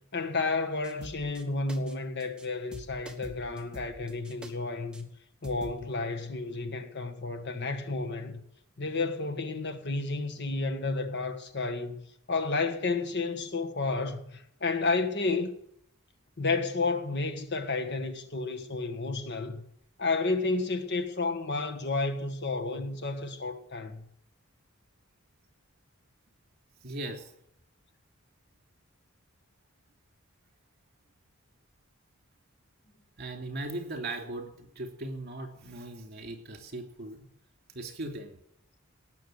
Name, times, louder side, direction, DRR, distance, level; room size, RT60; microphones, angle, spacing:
voice 1, 0.1-5.1 5.4-8.4 8.8-15.5 16.4-19.6 20.0-24.0, left 3 dB, 55° left, 1.6 m, -31 dB
sound 1, 0.8-1.4 1.7-2.5 2.7-4.5 4.9-5.0 5.4-5.8, right 1 dB, 5° right, 1.6 m, -46 dB
voice 2, 26.8-27.3 33.2-37.3 37.7-38.4, right 2 dB, 50° right, 3.0 m, -38 dB
18.5 x 6.9 x 8.0 m
head